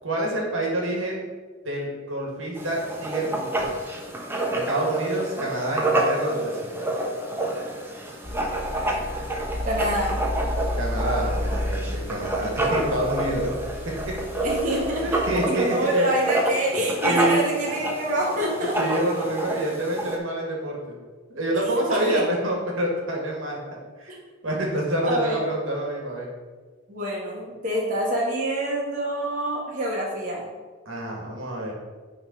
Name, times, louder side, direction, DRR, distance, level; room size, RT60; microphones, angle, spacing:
voice 1, 0.0-1.3 1.6-3.7 4.5-6.7 10.7-13.5 14.1-14.5 15.0-16.1 17.0-17.4 18.8-21.0 21.3-23.6 24.0-24.1 24.4-26.3 30.9-31.7, right 1 dB, 70° right, -2 dB, 1.9 m, -27 dB
Writing, 2.6-20.2, right 1 dB, 10° right, 0.9 m, -28 dB
sound 1, 8.2-15.3, left 1 dB, 45° left, 1.7 m, -32 dB
voice 2, 9.6-10.2 14.4-15.2 15.5-19.0 21.5-21.6 21.9-22.2 25.0-25.4 26.9-30.4, right 1 dB, 40° right, -5 dB, 1.5 m, -26 dB
9.1 x 3.8 x 5.3 m, 1.4 s
head